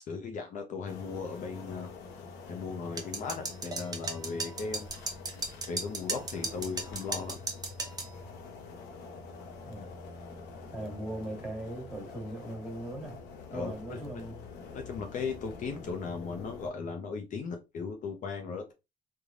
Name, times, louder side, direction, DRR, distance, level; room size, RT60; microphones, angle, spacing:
voice 1, 0.1-1.9 2.4-4.9 5.7-7.4 13.5-14.0 14.7-18.7, left 5 dB, 50° left, 0.6 m, -37 dB
sound 1, 0.9-16.7, left 4 dB, 85° left, 0.7 m, -46 dB
sound 2, 3.0-8.1, right 3 dB, 20° right, 0.7 m, -36 dB
voice 2, 9.6-10.0 10.7-13.2 13.5-14.4, right 1 dB, 5° right, 1.5 m, -39 dB
3.2 x 2.2 x 2.5 m
cardioid pair, 110°, 17 cm